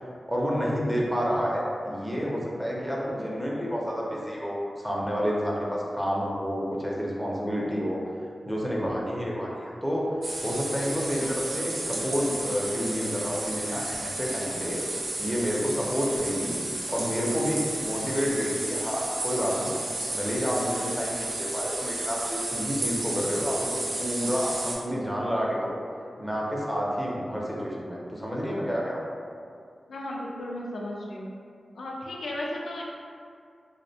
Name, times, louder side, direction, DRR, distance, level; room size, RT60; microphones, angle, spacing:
voice 1, 0.3-8.0 8.5-10.0 10.4-14.8 15.2-16.6 16.9-19.8 20.1-25.8 26.2-29.0, equal, ahead, -4 dB, 0.5 m, -29 dB
sound 1, 10.2-24.8, right 2 dB, 75° right, 0.5 m, -32 dB
voice 2, 29.9-31.3 31.8-32.8, left 1 dB, 90° left, -3 dB, 0.3 m, -35 dB
2.5 x 2.1 x 2.7 m, 2.3 s
cardioid pair, 55°, 0 cm